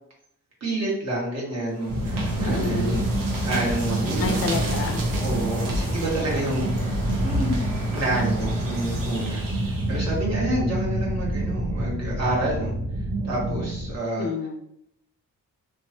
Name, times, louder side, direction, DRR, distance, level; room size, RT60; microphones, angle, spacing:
voice 1, 0.6-3.0 3.4-4.5 5.2-6.8 7.2-7.5 7.9-12.7 13.2-14.3, right 1 dB, 50° right, -5 dB, 1.3 m, -28 dB
sound 1, 1.8-10.2, right 1 dB, 75° right, 0.8 m, -33 dB
sound 2, 1.9-14.0, right 1 dB, 25° right, 0.7 m, -27 dB
voice 2, 2.4-3.1 4.2-5.1 5.7-6.0 14.2-14.6, left 4 dB, 45° left, 6 dB, 0.4 m, -30 dB
3.2 x 2.2 x 2.8 m, 0.75 s
cardioid pair, 95°, 34 cm